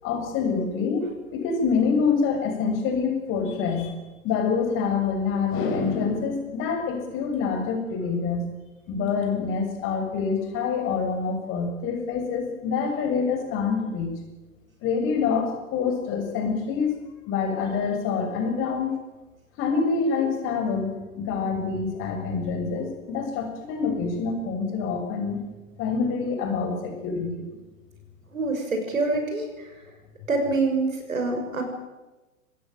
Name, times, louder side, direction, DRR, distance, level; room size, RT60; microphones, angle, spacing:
voice 1, 0.0-4.0 4.2-8.4 8.9-14.2 14.8-17.0 17.3-19.0 19.6-25.4 25.8-27.4, left 5 dB, 30° left, 4 dB, 6.9 m, -26 dB
voice 2, 28.3-29.7 30.3-31.6, right 3 dB, 70° right, 4 dB, 6.6 m, -26 dB
25.5 x 20.0 x 9.1 m, 1.1 s
figure-of-eight pair, 110°, 42 cm